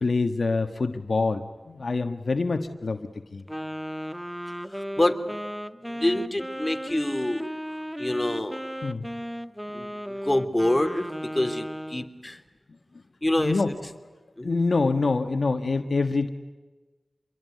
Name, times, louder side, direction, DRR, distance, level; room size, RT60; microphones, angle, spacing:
voice 1, 0.0-3.0 3.3-3.4 8.8-9.0 13.4-13.7 14.4-16.3, left 3 dB, 70° left, 8 dB, 1.5 m, -25 dB
Wind instrument woodwind instrument, 3.5-12.1, equal, ahead, 1.4 m, -35 dB
voice 2, 4.7-5.2 5.9-7.5 8.0-8.6 9.7-12.4 13.2-13.7 14.4-14.6, left 1 dB, 25° left, 7 dB, 3.1 m, -26 dB
27.5 x 22.5 x 9.4 m, 1.3 s
cardioid pair, 40°, 0 cm